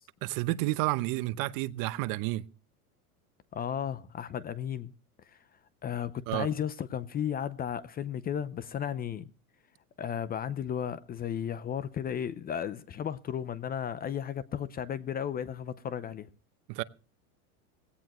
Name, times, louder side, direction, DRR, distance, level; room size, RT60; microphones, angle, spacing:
voice 1, 0.2-2.4 6.3-6.5 16.7-16.8, right 18 dB, 45° right, 0.9 m, -30 dB
voice 2, 3.5-4.9 5.2-5.4 5.8-9.3 10.0-16.3, left 9 dB, 20° left, 0.6 m, -34 dB
18.0 x 17.0 x 3.0 m
supercardioid pair, 130°, 45 cm